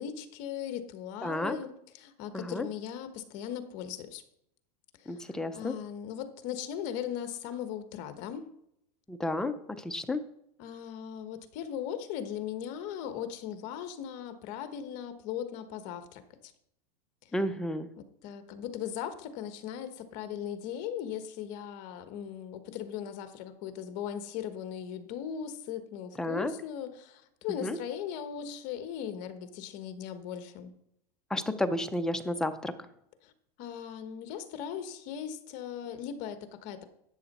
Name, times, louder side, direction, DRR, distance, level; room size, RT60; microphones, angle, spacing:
voice 1, 0.0-4.2 5.0-8.5 10.6-16.5 17.2-17.3 18.0-30.7 33.2-33.3 33.6-36.8, left 9 dB, 40° left, 10 dB, 1.2 m, -38 dB
voice 2, 1.2-1.6 2.3-2.7 5.1-5.7 9.1-9.5 9.8-10.2 17.3-17.9 26.2-26.5 27.6-27.8 31.3-32.7, left 1 dB, 5° left, 7 dB, 0.5 m, -31 dB
12.5 x 8.9 x 4.2 m, 0.77 s
supercardioid pair, 160°, 21 cm